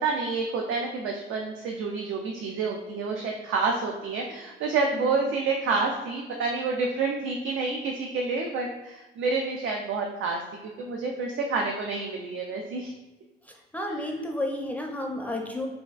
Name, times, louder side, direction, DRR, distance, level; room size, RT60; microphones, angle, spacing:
voice 1, 0.0-10.4 10.8-12.9, right 4 dB, 80° right, 1 dB, 0.4 m, -28 dB
voice 2, 13.4-15.7, left 1 dB, 5° left, 1 dB, 0.4 m, -32 dB
3.4 x 2.4 x 2.3 m, 1.1 s
cardioid pair, 90°, 20 cm